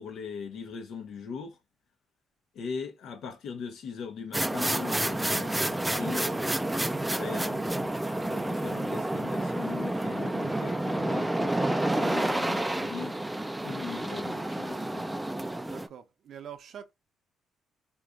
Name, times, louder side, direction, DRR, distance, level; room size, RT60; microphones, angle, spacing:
voice 1, 0.0-1.6 2.5-13.2 13.6-15.1, left 6 dB, 75° left, 0.9 m, -40 dB
sound 1, 4.3-15.9, right 1 dB, 10° right, 0.3 m, -29 dB
voice 2, 15.6-16.9, right 9 dB, 65° right, 0.6 m, -45 dB
3.8 x 2.6 x 2.2 m
cardioid pair, 90°, 0 cm